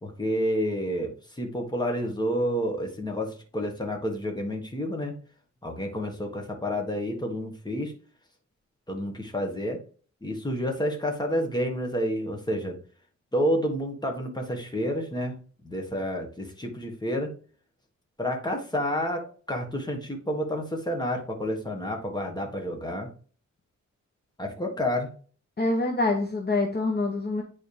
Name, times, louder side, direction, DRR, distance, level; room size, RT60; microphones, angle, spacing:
voice 1, 0.0-5.2 5.6-7.9 8.9-9.8 10.2-12.7 13.3-17.3 18.2-23.1 24.4-25.1, equal, 15° left, 2 dB, 1.5 m, -29 dB
voice 2, 25.6-27.4, left 2 dB, 35° left, 2 dB, 1.0 m, -25 dB
9.4 x 4.2 x 3.3 m, 0.41 s
wide cardioid pair, 170°, 30 cm